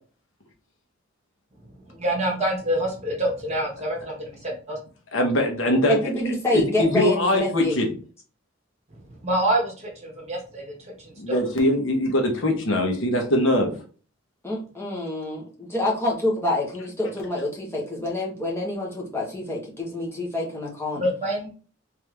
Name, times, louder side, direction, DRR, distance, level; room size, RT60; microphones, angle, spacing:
voice 1, 1.6-4.8 8.9-11.4 20.9-21.5, right 1 dB, 35° right, -1 dB, 1.4 m, -27 dB
voice 2, 5.1-6.0 6.5-7.9 11.2-13.7, left 1 dB, 80° left, 2 dB, 1.1 m, -22 dB
voice 3, 5.9-7.7 14.4-21.0, left 1 dB, 10° left, -3 dB, 1.2 m, -27 dB
3.4 x 3.4 x 3.3 m, 0.39 s
head